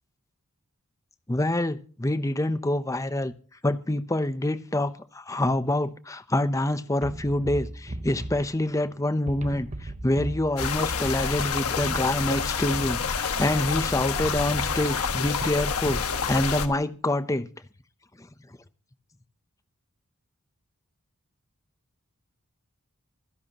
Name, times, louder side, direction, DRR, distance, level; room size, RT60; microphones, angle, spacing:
voice 1, 1.3-3.3 3.6-17.5 18.2-18.3, left 1 dB, 15° left, 0.6 m, -26 dB
sound 1, 7.0-8.9 9.3-13.7 14.2-16.2, right 1 dB, 30° right, 0.9 m, -37 dB
sound 2, 10.6-16.7, left 6 dB, 85° left, 1.3 m, -28 dB
25.5 x 10.5 x 2.9 m
head